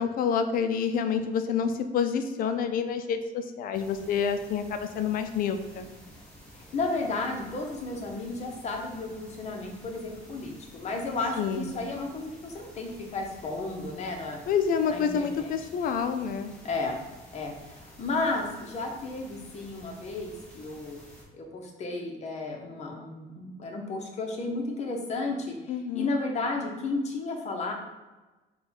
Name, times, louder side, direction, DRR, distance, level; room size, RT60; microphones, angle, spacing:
voice 1, 0.0-5.9 11.4-11.7 14.5-16.5 25.7-26.1, left 7 dB, 55° left, 8 dB, 0.4 m, -28 dB
sound 1, 3.7-21.2, equal, 5° left, 0.9 m, -51 dB
voice 2, 6.5-14.4 14.9-15.5 16.6-17.0 17.3-21.0 21.3-25.6 25.9-27.7, left 3 dB, 40° left, 2 dB, 0.8 m, -33 dB
4.0 x 2.3 x 4.2 m, 1.1 s
cardioid pair, 110°, 17 cm